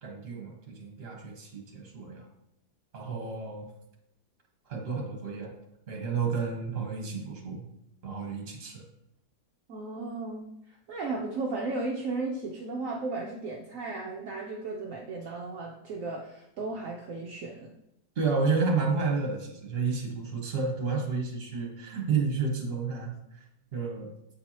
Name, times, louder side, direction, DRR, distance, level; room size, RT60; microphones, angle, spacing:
voice 1, 0.0-2.3 2.9-3.7 4.7-5.5 5.9-7.6 8.0-8.8 18.1-23.1 23.7-24.1, right 4 dB, 40° right, 0 dB, 1.5 m, -31 dB
voice 2, 9.7-17.7, right 3 dB, 65° right, -1 dB, 1.0 m, -35 dB
7.9 x 4.5 x 2.9 m, 0.83 s
omnidirectional pair, 1.7 m